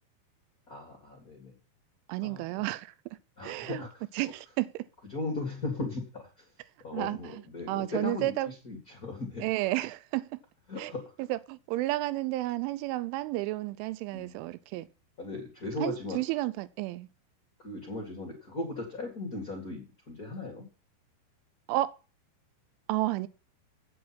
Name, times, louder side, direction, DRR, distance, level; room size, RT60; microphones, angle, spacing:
voice 1, 0.7-1.5 2.2-2.6 3.4-4.0 5.1-6.5 6.8-9.4 10.7-11.1 14.1-14.5 15.2-16.2 17.6-20.7, left 2 dB, 60° left, 0.9 m, -37 dB
voice 2, 2.1-2.9 3.4-3.8 4.1-4.9 6.9-7.4 7.7-8.5 9.4-10.4 10.8-10.9 11.2-14.9 15.8-17.1 21.7-21.9 22.9-23.3, right 17 dB, 85° right, 3.0 m, -32 dB
8.7 x 7.8 x 5.8 m
omnidirectional pair, 5.5 m